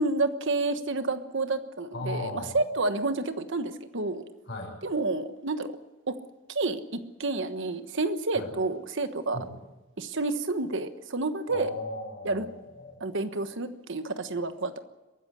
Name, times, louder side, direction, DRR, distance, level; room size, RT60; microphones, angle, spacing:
voice 1, 0.0-4.2 4.8-5.7 6.1-6.2 6.5-9.4 10.0-11.7 12.2-12.5 13.0-14.8, right 3 dB, 65° right, 9 dB, 1.3 m, -29 dB
voice 2, 1.9-2.5 4.5-4.7 8.3-8.5 9.3-9.5 11.5-13.0, left 2 dB, 55° left, 0 dB, 6.9 m, -37 dB
23.0 x 14.0 x 9.8 m, 1.1 s
head